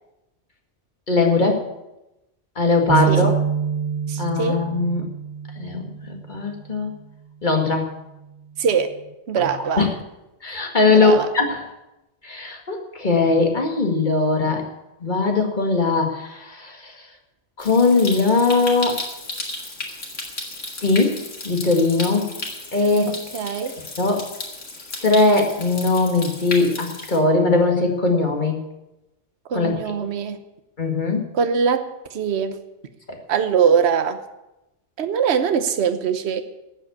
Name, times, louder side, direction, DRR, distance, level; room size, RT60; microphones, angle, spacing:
voice 1, 1.1-1.6 2.6-3.3 4.2-5.1 5.6-6.9 7.4-7.9 9.4-9.5 9.8-9.9 10.4-11.6 12.2-14.6 15.0-16.9 17.6-19.0 20.8-21.2 21.4-22.3 22.7-23.1 24.0-24.2 25.0-28.6 29.5-29.7 30.8-31.2 33.1-33.2, left 3 dB, 40° left, 2 dB, 2.1 m, -20 dB
sound 1, 2.9-6.4, right 7 dB, 30° right, 0.9 m, -25 dB
voice 2, 4.1-4.7 8.6-9.0 9.3-9.8 10.9-11.3 23.3-23.8 29.5-30.4 31.3-32.6 33.3-34.2 35.0-36.4, right 7 dB, 65° right, 9 dB, 1.2 m, -22 dB
Stream, 17.6-27.2, left 2 dB, 85° left, 2.6 m, -34 dB
13.0 x 7.7 x 8.4 m, 0.96 s
omnidirectional pair, 1.2 m